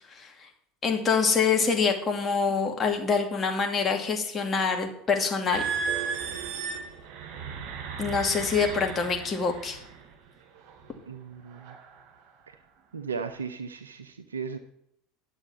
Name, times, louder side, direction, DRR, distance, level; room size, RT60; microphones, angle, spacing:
voice 1, 0.8-5.7 8.0-9.8, left 5 dB, 25° left, 3 dB, 2.4 m, -25 dB
sound 1, 5.5-10.0 10.7-10.9 11.5-11.8, right 6 dB, 55° right, 3.0 m, -34 dB
voice 2, 11.1-11.8 12.5-12.6 12.9-14.6, right 5 dB, 80° right, 9 dB, 0.6 m, -36 dB
11.0 x 7.0 x 7.1 m, 0.73 s
figure-of-eight pair, 75°, 0 cm